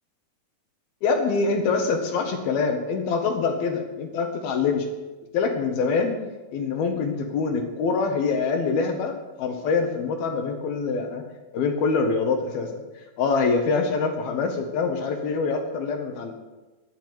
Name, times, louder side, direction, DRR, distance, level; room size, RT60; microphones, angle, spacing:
voice 1, 1.0-4.9 5.3-6.2 6.5-11.2 11.5-12.8 13.2-16.3, left 4 dB, 70° left, 4 dB, 3.6 m, -25 dB
11.5 x 11.0 x 9.8 m, 1.2 s
omnidirectional pair, 4.5 m